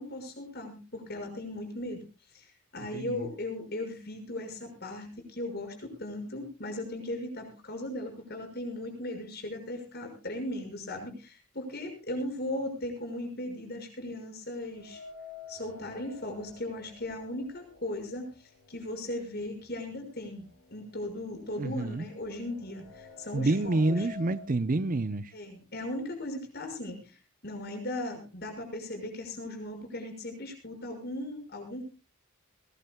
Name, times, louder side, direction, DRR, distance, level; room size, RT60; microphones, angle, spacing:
voice 1, 0.0-2.0 2.3-15.0 15.5-18.3 18.7-20.4 20.7-24.1 25.3-31.8, left 1 dB, 50° left, 6.0 m, -37 dB
sound 1, 14.7-18.8 19.1-19.2 20.2-20.3 20.7-24.5, left 4 dB, 75° left, 3.3 m, -50 dB
voice 2, 21.6-22.1 23.3-25.3, right 2 dB, 40° right, 0.7 m, -28 dB
21.5 x 19.5 x 2.3 m
head